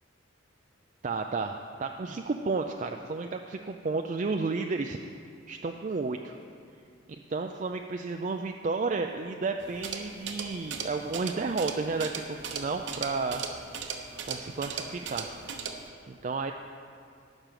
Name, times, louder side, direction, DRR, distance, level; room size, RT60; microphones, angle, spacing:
voice 1, 1.0-5.0 5.5-6.4 7.3-13.4 13.8-15.3 16.1-16.5, right 4 dB, 40° right, 4 dB, 0.4 m, -32 dB
sound 1, 9.6-15.9, right 6 dB, 60° right, 0.9 m, -38 dB
11.5 x 6.1 x 9.1 m, 2.4 s
head